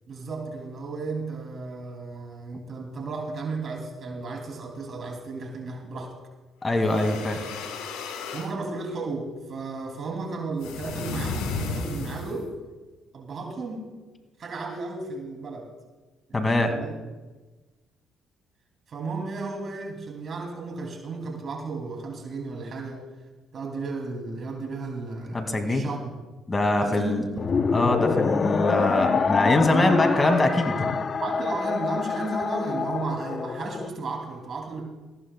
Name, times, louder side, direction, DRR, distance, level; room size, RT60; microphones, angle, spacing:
voice 1, 0.1-6.1 8.3-12.5 13.1-13.9 14.4-15.7 16.3-17.0 18.9-23.0 23.5-26.1 26.8-27.5 31.2-34.8, right 3 dB, 55° right, 1 dB, 2.6 m, -34 dB
voice 2, 6.6-7.4 16.3-16.8 25.3-25.8 26.5-27.2 27.7-31.0, left 2 dB, 25° left, 5 dB, 2.1 m, -23 dB
sound 1, 6.7-8.5 10.6-12.5, left 4 dB, 90° left, 1.3 m, -33 dB
sound 2, 27.4-33.9, left 5 dB, 45° left, 0.7 m, -26 dB
19.0 x 14.5 x 2.2 m, 1.2 s
supercardioid pair, 70°, 0 cm